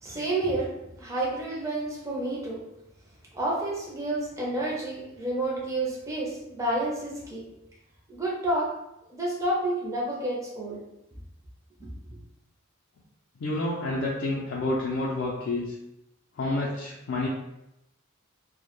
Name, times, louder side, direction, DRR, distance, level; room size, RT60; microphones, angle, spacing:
voice 1, 0.0-2.6 3.3-7.4 8.1-8.7 9.1-10.8 11.8-11.9, right 1 dB, 15° right, -5 dB, 0.4 m, -30 dB
voice 2, 13.4-15.8 16.3-17.3, left 2 dB, 60° left, -4 dB, 0.4 m, -29 dB
2.1 x 2.1 x 2.9 m, 0.87 s
head